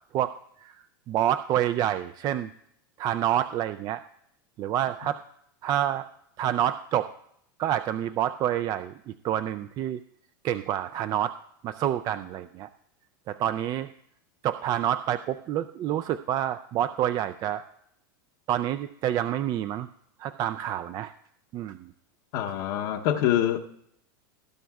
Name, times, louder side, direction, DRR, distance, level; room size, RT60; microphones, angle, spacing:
voice 1, 1.1-2.5 3.0-4.0 4.6-5.2 5.6-6.1 6.4-7.1 7.6-10.0 10.4-11.3 11.6-12.7 13.3-13.9 14.4-17.6 18.5-19.9 20.2-21.1 21.5-21.9, right 11 dB, 35° right, 0.3 m, -28 dB
voice 2, 22.3-23.6, left 11 dB, 60° left, 0.8 m, -25 dB
19.0 x 10.0 x 2.3 m
supercardioid pair, 120°, 12 cm